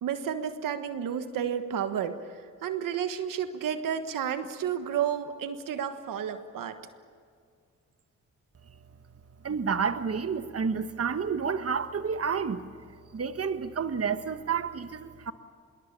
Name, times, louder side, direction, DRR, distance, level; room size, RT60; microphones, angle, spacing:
voice 1, 0.0-6.8, right 8 dB, 85° right, 9 dB, 1.5 m, -31 dB
voice 2, 9.4-12.6 13.1-15.3, right 6 dB, 45° right, 10 dB, 1.4 m, -30 dB
26.5 x 22.0 x 7.4 m, 2.2 s
cardioid pair, 55°, 32 cm